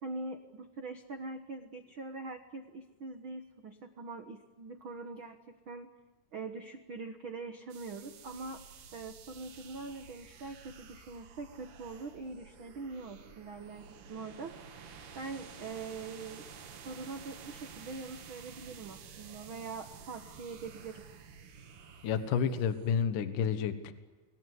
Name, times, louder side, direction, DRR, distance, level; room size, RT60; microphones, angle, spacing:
voice 1, 0.0-5.9 6.3-8.6 8.9-14.5 15.1-16.5 16.8-21.0, right 3 dB, 70° right, 6 dB, 1.2 m, -43 dB
sound 1, 7.7-23.0, right 6 dB, 90° right, 4.5 m, -51 dB
voice 2, 22.0-23.9, left 7 dB, 65° left, 10 dB, 2.6 m, -30 dB
29.5 x 22.5 x 8.2 m, 1.3 s
omnidirectional pair, 4.6 m